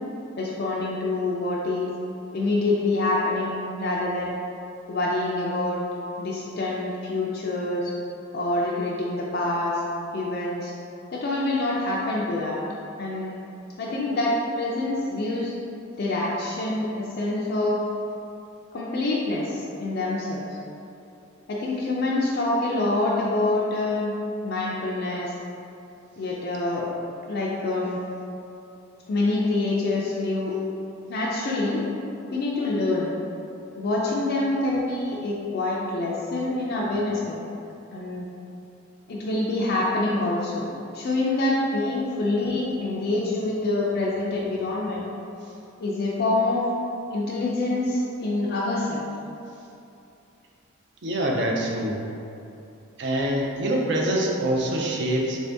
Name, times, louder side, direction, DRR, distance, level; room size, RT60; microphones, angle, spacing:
voice 1, 0.4-1.9 2.3-4.3 4.9-5.8 6.2-7.9 8.3-9.8 10.1-10.7 11.1-12.6 13.0-13.3 13.8-15.5 16.0-17.8 18.7-20.6 21.5-24.2 24.4-25.3 26.2-26.9 27.3-28.0 29.1-30.5 31.1-31.8 32.3-33.1 33.8-37.4 37.9-38.3 39.1-40.7 40.9-45.1 45.8-46.7 47.1-49.0, left 2 dB, 50° left, -5 dB, 0.3 m, -26 dB
voice 2, 51.0-52.0 53.0-55.4, right 1 dB, 55° right, -1 dB, 0.4 m, -25 dB
3.4 x 2.6 x 3.3 m, 2.7 s
head